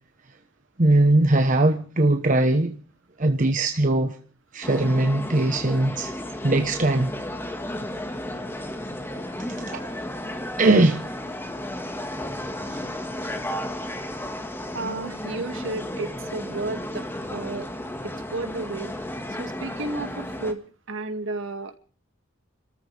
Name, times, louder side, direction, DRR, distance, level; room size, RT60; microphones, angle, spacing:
voice 1, 0.8-2.8 3.2-4.2 4.5-6.1 6.4-7.1 9.7-10.0 10.6-11.0 12.7-12.8, right 2 dB, 40° right, 1.1 m, -20 dB
sound 1, 4.6-20.5, left 1 dB, 10° left, 1.7 m, -33 dB
voice 2, 14.7-17.7 18.0-18.9 19.3-20.6 20.9-21.8, right 2 dB, 65° right, 2.2 m, -32 dB
30.0 x 14.0 x 3.4 m
head